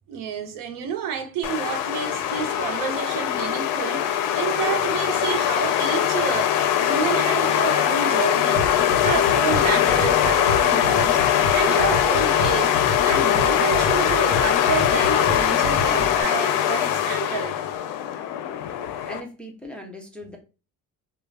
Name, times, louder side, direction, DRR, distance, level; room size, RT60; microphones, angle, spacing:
voice 1, 0.1-8.6 9.0-12.8 13.0-17.6, right 7 dB, 80° right, 0.7 m, -29 dB
sound 1, 1.4-19.2, left 10 dB, 80° left, 0.5 m, -21 dB
sound 2, 8.5-16.2, left 2 dB, 40° left, 1.1 m, -32 dB
voice 2, 19.0-20.4, equal, 5° left, 0.3 m, -38 dB
2.3 x 2.1 x 3.4 m
cardioid pair, 155°, 32 cm